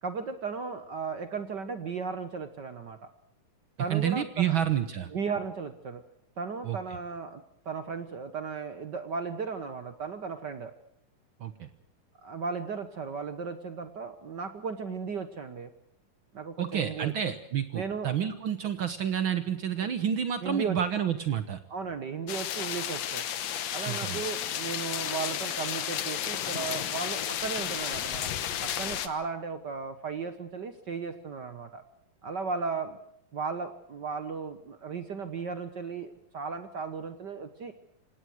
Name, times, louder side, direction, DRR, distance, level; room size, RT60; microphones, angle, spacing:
voice 1, 0.0-3.0 3.8-4.6 5.1-6.0 6.4-10.7 12.2-15.7 16.3-17.1 17.7-18.1 19.8-19.9 20.4-20.8 21.7-23.3 23.7-28.3 28.6-31.8 32.2-33.0 33.3-37.7, right 5 dB, 65° right, 9 dB, 1.0 m, -35 dB
voice 2, 3.9-5.1 6.6-6.8 11.4-11.7 16.6-21.6 23.9-24.2, right 9 dB, 90° right, 10 dB, 1.0 m, -29 dB
sound 1, 22.3-29.1, left 10 dB, 60° left, 2.1 m, -32 dB
27.5 x 18.0 x 6.3 m, 0.72 s
omnidirectional pair, 3.8 m